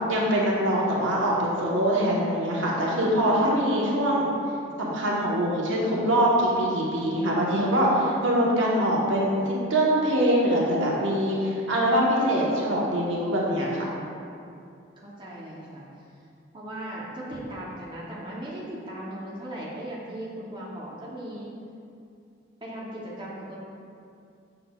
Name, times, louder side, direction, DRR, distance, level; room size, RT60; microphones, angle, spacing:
voice 1, 0.1-4.3 4.8-13.9, equal, 80° right, -4 dB, 1.1 m, -23 dB
voice 2, 15.0-15.9 16.5-21.5 22.6-23.6, right 1 dB, 25° right, -6 dB, 0.7 m, -37 dB
6.7 x 6.0 x 2.3 m, 2.5 s
head